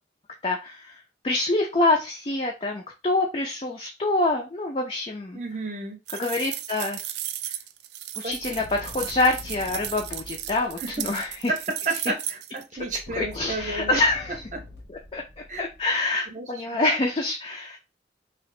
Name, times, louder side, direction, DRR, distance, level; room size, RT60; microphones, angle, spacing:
voice 1, 0.4-5.4 6.2-7.0 8.2-11.5 13.2-14.4 14.9-15.2 15.6-17.8, left 2 dB, 30° left, 0 dB, 0.4 m, -26 dB
voice 2, 5.3-6.0 8.2-8.4 10.8-11.0 11.5-14.0 14.5-14.6 15.5-15.6 16.3-16.8, right 3 dB, 40° right, 4 dB, 0.7 m, -32 dB
sound 1, 6.1-12.6, right 12 dB, 70° right, 0.3 m, -35 dB
sound 2, 8.3-11.5 12.8-16.1, left 2 dB, 70° left, 1.0 m, -44 dB
2.8 x 2.5 x 3.1 m, 0.27 s
head